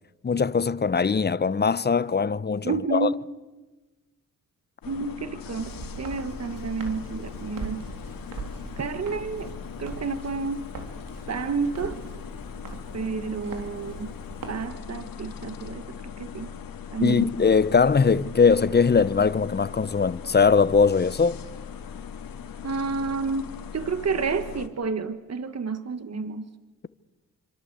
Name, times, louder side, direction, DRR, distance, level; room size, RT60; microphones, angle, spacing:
voice 1, 0.2-3.1 17.0-21.4, left 5 dB, 30° left, 0.9 m, -21 dB
voice 2, 2.6-3.1 4.9-5.7 6.0-7.8 8.8-9.5 9.8-10.6 11.3-12.0 12.9-14.1 14.5-15.8 16.2-16.5 16.9-17.3 22.6-26.5, right 4 dB, 50° right, 1.7 m, -30 dB
sound 1, 4.8-24.7, left 7 dB, 80° left, 2.1 m, -40 dB
Walk footsteps, 5.6-14.7, right 4 dB, 75° right, 3.9 m, -41 dB
27.0 x 26.0 x 8.2 m
cardioid pair, 60°, 34 cm